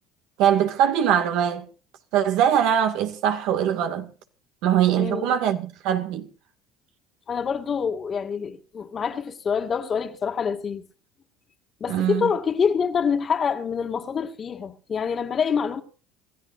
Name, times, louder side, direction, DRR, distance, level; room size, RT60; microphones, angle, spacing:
voice 1, 0.4-1.7 2.1-4.1 4.6-6.3 11.9-12.3, right 9 dB, 70° right, 2.1 m, -22 dB
voice 2, 4.9-5.3 7.3-10.8 11.8-15.8, left 6 dB, 35° left, 2.0 m, -26 dB
27.5 x 14.0 x 2.6 m
supercardioid pair, 105°, 0 cm